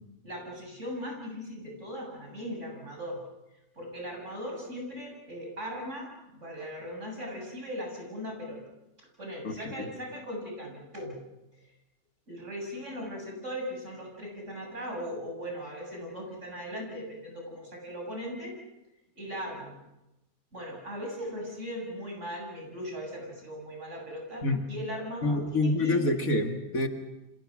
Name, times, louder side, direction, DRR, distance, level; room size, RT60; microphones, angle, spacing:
voice 1, 0.2-3.2 3.8-8.6 9.2-11.2 12.3-18.5 19.2-19.7 20.5-26.0, equal, 55° right, 0 dB, 7.8 m, -38 dB
voice 2, 9.4-9.9 24.4-24.6 25.2-26.9, left 2 dB, 70° left, 5 dB, 2.5 m, -27 dB
29.5 x 26.0 x 6.3 m, 0.97 s
omnidirectional pair, 1.5 m